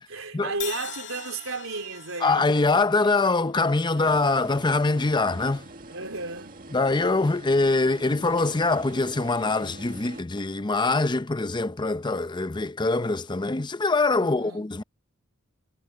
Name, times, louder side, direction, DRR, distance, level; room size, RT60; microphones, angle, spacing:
voice 1, 0.1-2.5 3.0-3.1 3.9-4.1 5.9-6.6 14.2-14.7, right 3 dB, 70° right, 3.9 m, -34 dB
Crash cymbal, 0.6-4.6, left 11 dB, 55° left, 2.2 m, -42 dB
voice 2, 2.2-5.7 6.7-14.8, left 3 dB, 20° left, 0.6 m, -23 dB
sound 1, 4.0-10.2, right 2 dB, 40° right, 1.9 m, -44 dB
head